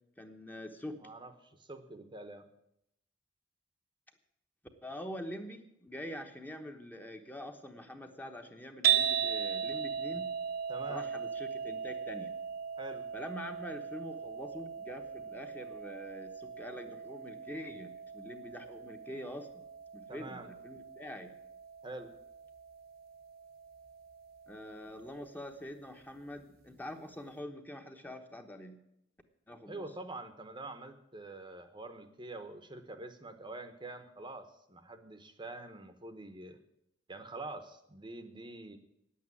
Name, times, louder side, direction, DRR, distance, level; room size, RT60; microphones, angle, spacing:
voice 1, 0.2-1.0 4.8-10.3 10.9-12.3 13.1-19.6 19.9-21.3 24.5-28.8 29.5-29.9, equal, 10° left, 5 dB, 1.0 m, -45 dB
voice 2, 1.0-2.5 10.7-11.1 12.8-13.0 20.1-20.5 21.8-22.1 29.7-36.6 37.1-38.8, right 2 dB, 25° right, 8 dB, 0.9 m, -45 dB
sound 1, 8.8-25.1, right 8 dB, 50° right, 0.9 m, -38 dB
10.0 x 8.5 x 9.7 m, 0.79 s
head